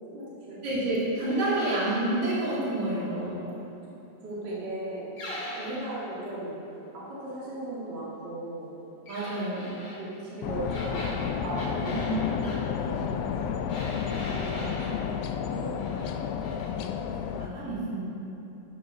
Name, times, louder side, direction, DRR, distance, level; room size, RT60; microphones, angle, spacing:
voice 1, 0.1-0.6 3.2-3.6 4.2-5.1 5.6-6.6 6.9-8.7 10.0-13.1 14.0-16.2, right 1 dB, 40° right, -7 dB, 2.3 m, -38 dB
voice 2, 0.6-3.5 9.1-9.7 11.9-12.2 17.2-18.0, right 1 dB, 70° right, -9 dB, 4.0 m, -29 dB
sound 1, 1.3-2.1 5.2-6.0 9.1-10.0 10.6-12.6 13.7-15.0 15.5-16.1 16.4-16.7, left 1 dB, 40° left, 2.2 m, -40 dB
sound 2, 10.4-17.5, left 7 dB, 80° left, 1.5 m, -31 dB
13.0 x 5.7 x 5.5 m, 2.9 s
omnidirectional pair, 3.4 m